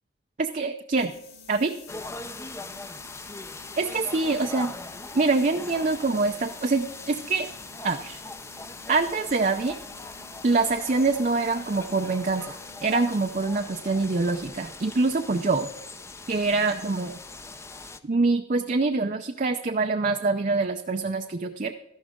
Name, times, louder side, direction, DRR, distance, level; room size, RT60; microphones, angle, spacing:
voice 1, 0.4-1.1 1.5-1.7 3.8-4.7 5.1-7.5 7.8-8.2 8.9-9.7 10.4-15.7 16.3-17.2 18.0-21.7, right 3 dB, 45° right, 6 dB, 0.5 m, -25 dB
sound 1, 0.9-13.8, left 6 dB, 65° left, 4.6 m, -50 dB
sound 2, 1.9-18.0, left 3 dB, 15° left, 0.5 m, -41 dB
13.0 x 11.5 x 3.7 m, 0.89 s
head